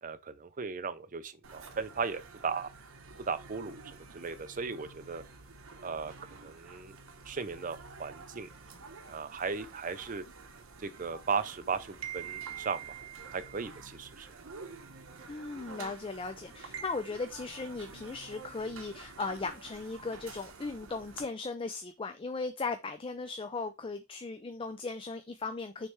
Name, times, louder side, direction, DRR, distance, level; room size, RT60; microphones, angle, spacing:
voice 1, 0.0-2.7 3.3-3.8 4.1-5.2 5.8-7.0 7.3-8.5 9.1-10.2 10.8-13.0 13.3-14.3, right 5 dB, 40° right, 0.6 m, -36 dB
sound 1, 1.4-21.3, right 5 dB, 75° right, 1.1 m, -48 dB
voice 2, 15.3-25.9, left 3 dB, 25° left, 0.4 m, -37 dB
6.4 x 3.3 x 4.5 m
head